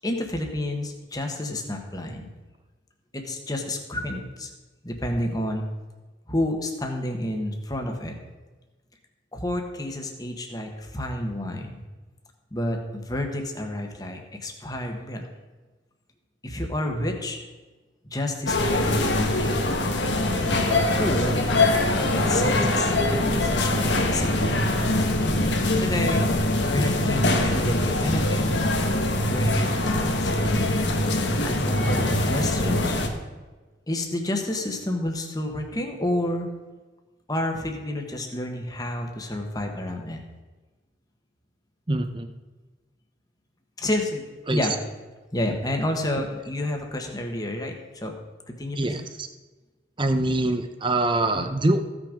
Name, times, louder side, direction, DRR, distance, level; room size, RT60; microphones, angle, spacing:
voice 1, 0.0-2.3 3.1-4.5 4.8-5.6 6.3-8.2 9.3-11.8 12.5-15.3 16.4-17.4 18.0-19.6 20.4-21.4 22.3-24.6 25.8-26.3 26.6-28.6 29.3-30.9 31.4-33.0 33.9-36.5 37.3-40.2 43.8-44.2 44.5-44.7 45.3-48.2 48.5-48.9 51.3-51.5, left 1 dB, 20° left, 3 dB, 1.3 m, -30 dB
sound 1, 18.5-33.1, left 1 dB, 75° left, 1.3 m, -23 dB
voice 2, 41.9-42.3 44.5-44.6 48.8-49.3 50.0-51.8, right 2 dB, 25° right, 8 dB, 0.7 m, -24 dB
15.0 x 6.2 x 5.1 m, 1.3 s
head